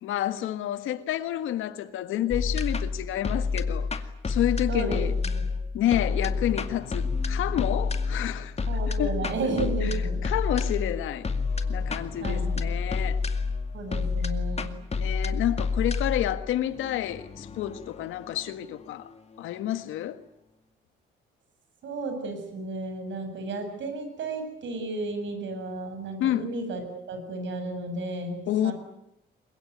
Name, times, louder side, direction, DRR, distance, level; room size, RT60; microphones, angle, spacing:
voice 1, 0.0-3.9 4.3-5.2 5.7-8.5 9.0-9.2 10.2-11.3 11.7-13.2 14.9-19.1 19.4-20.2 26.2-26.5 28.5-28.7, left 12 dB, 85° left, 1.7 m, -29 dB
sound 1, 2.3-19.4, left 4 dB, 30° left, 2.2 m, -29 dB
voice 2, 4.7-5.5 8.6-10.2 12.2-12.7 13.7-14.7 21.8-28.7, right 2 dB, 70° right, 7.9 m, -33 dB
23.5 x 21.5 x 9.5 m
cardioid pair, 90°, 20 cm